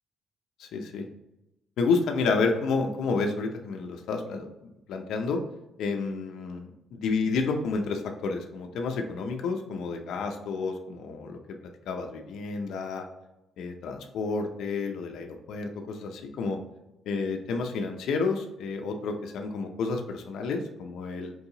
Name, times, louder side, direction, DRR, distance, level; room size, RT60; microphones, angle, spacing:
voice 1, 0.6-1.1 1.8-4.5 4.9-5.4 5.8-11.4 11.9-13.1 13.6-16.6 17.1-21.3, left 4 dB, 80° left, 4 dB, 0.5 m, -30 dB
4.6 x 2.8 x 2.7 m, 0.92 s
cardioid pair, 90°, 0 cm